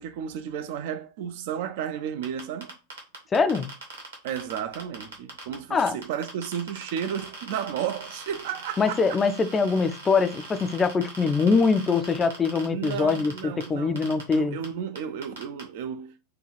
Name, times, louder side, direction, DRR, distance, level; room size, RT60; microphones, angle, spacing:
voice 1, 0.0-2.7 4.2-9.2 12.7-14.0 14.3-16.2, right 8 dB, 50° right, 0.4 m, -33 dB
sound 1, 2.2-5.5 5.8-13.7 14.0-14.3 14.6-14.7 15.0-15.6, right 3 dB, 70° right, 1.4 m, -41 dB
voice 2, 3.3-3.7 5.7-6.0 8.8-14.6, left 4 dB, 20° left, 0.4 m, -23 dB
4.8 x 2.3 x 3.2 m
figure-of-eight pair, 90°, 0 cm